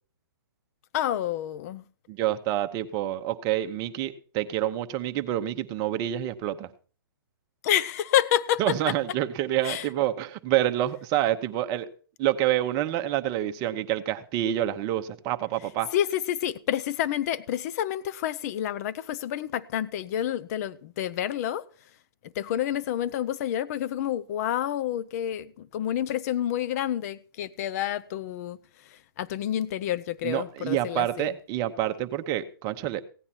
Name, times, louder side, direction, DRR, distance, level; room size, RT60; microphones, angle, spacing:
voice 1, 0.9-1.9 7.6-8.9 9.6-9.9 15.9-21.7 22.3-28.6 28.9-31.3, left 11 dB, 45° left, 0.7 m, -29 dB
voice 2, 2.1-6.7 8.6-11.9 12.2-15.9 30.2-33.0, right 12 dB, 30° right, 0.9 m, -27 dB
16.5 x 9.8 x 4.4 m
hypercardioid pair, 140°, 12 cm